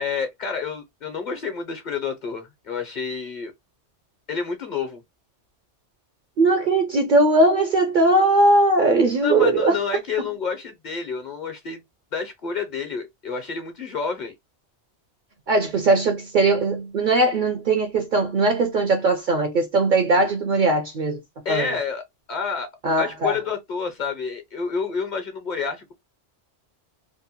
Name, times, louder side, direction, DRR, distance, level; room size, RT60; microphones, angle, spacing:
voice 1, 0.0-3.5 4.3-5.0 9.2-11.8 12.1-14.3 21.4-22.0 22.3-22.7 23.0-25.9, left 5 dB, 50° left, 0.6 m, -29 dB
voice 2, 6.4-10.0 15.5-21.2 21.5-21.7 22.8-23.4, right 2 dB, 60° right, 0.5 m, -19 dB
2.7 x 2.1 x 2.7 m
omnidirectional pair, 1.2 m